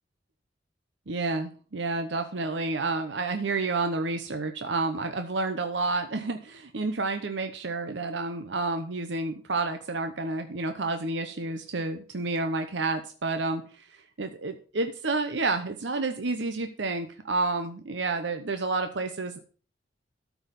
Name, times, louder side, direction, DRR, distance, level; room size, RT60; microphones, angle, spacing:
voice 1, 1.1-13.8 14.2-19.4, right 3 dB, 70° right, 7 dB, 0.9 m, -30 dB
13.0 x 4.8 x 5.3 m, 0.39 s
head